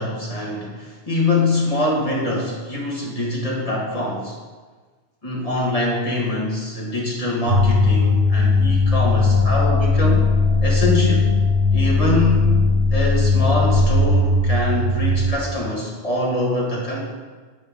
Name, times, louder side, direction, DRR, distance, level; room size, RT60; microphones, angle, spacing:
voice 1, 0.0-4.4 5.2-10.3 10.6-11.4 11.7-12.6 12.9-17.0, left 1 dB, 30° left, -4 dB, 1.8 m, -24 dB
sound 1, 7.5-15.3, left 3 dB, 80° left, 2.4 m, -18 dB
7.9 x 5.4 x 3.7 m, 1.4 s
omnidirectional pair, 1.2 m